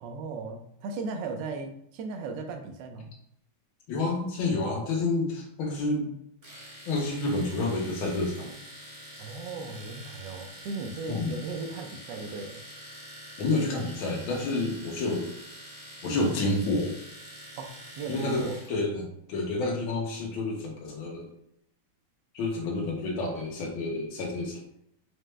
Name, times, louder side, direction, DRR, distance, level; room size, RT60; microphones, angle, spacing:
voice 1, 0.0-3.1 9.2-12.6 17.6-18.6, right 4 dB, 75° right, 4 dB, 1.2 m, -37 dB
voice 2, 3.9-6.1 6.9-8.5 11.1-11.4 13.4-15.3 16.0-16.9 18.1-21.3 22.3-24.6, left 2 dB, 85° left, 0 dB, 1.7 m, -29 dB
Domestic sounds home sounds, 6.4-18.8, equal, 20° right, 1.1 m, -46 dB
5.0 x 2.2 x 3.1 m, 0.73 s
omnidirectional pair, 2.2 m